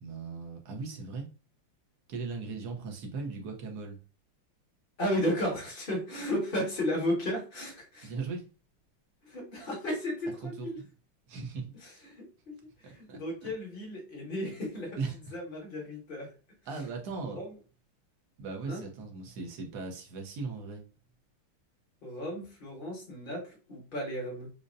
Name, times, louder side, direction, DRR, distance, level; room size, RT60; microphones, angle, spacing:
voice 1, 0.0-1.3 2.1-4.0 8.0-8.4 10.4-10.9 11.3-11.7 12.8-13.5 15.0-15.2 16.7-17.4 18.4-20.8, right 4 dB, 60° right, 2 dB, 1.2 m, -38 dB
voice 2, 5.0-8.1 9.2-10.8 11.8-12.5 12.8-15.0 15.3-16.3 17.3-17.5 18.7-18.8 22.0-24.5, equal, 30° left, -1 dB, 1.2 m, -34 dB
5.2 x 2.1 x 2.6 m, 0.34 s
omnidirectional pair, 2.3 m